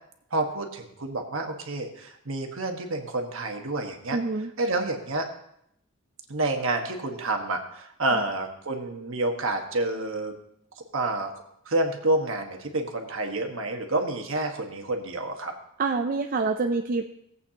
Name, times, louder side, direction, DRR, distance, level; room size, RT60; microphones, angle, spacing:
voice 1, 0.3-4.2 4.6-5.3 6.3-10.3 10.9-11.3 11.7-15.5, right 2 dB, 65° right, 4 dB, 1.4 m, -28 dB
voice 2, 4.1-4.5 8.1-8.2 15.8-17.0, right 3 dB, 40° right, 5 dB, 0.4 m, -26 dB
17.5 x 8.3 x 2.9 m, 0.74 s
head